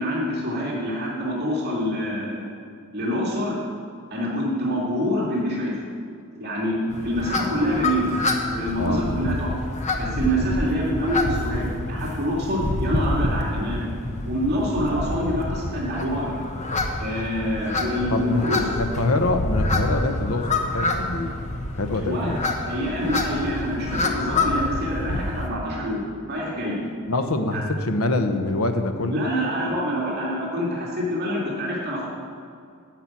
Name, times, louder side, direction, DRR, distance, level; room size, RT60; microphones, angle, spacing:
voice 1, 0.0-2.5 2.9-3.6 4.1-5.8 6.4-6.7 7.0-8.1 8.4-9.5 10.0-13.9 14.2-16.3 17.0-18.7 22.0-22.3 22.7-26.8 27.5-27.6 29.1-32.1, equal, 50° right, -5 dB, 2.4 m, -26 dB
sound 1, 6.9-25.5, left 2 dB, 35° left, 1.0 m, -27 dB
voice 2, 8.8-9.1 18.1-21.3 21.8-22.4 27.1-29.2, left 2 dB, 75° left, 7 dB, 1.0 m, -25 dB
12.0 x 6.0 x 8.4 m, 2.3 s
head